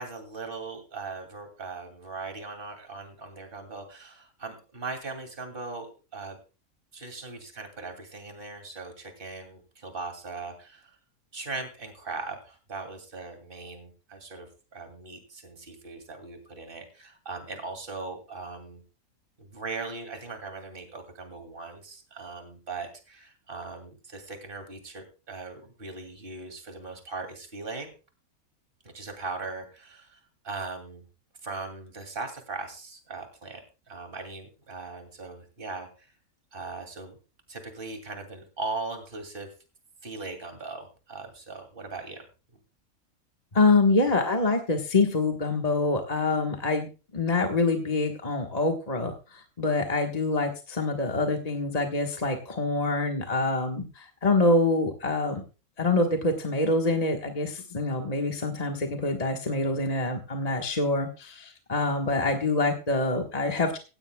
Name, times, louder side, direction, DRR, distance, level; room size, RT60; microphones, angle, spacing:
voice 1, 0.0-6.4 6.9-11.0 11.3-18.8 19.4-27.9 28.8-31.0 31.4-33.6 33.9-36.1 36.5-37.2 37.5-39.5 40.0-42.2, right 3 dB, 35° right, 5 dB, 2.7 m, -39 dB
voice 2, 43.5-55.4 55.8-63.8, left 3 dB, 30° left, 3 dB, 1.4 m, -26 dB
16.5 x 15.5 x 2.3 m, 0.33 s
omnidirectional pair, 1.5 m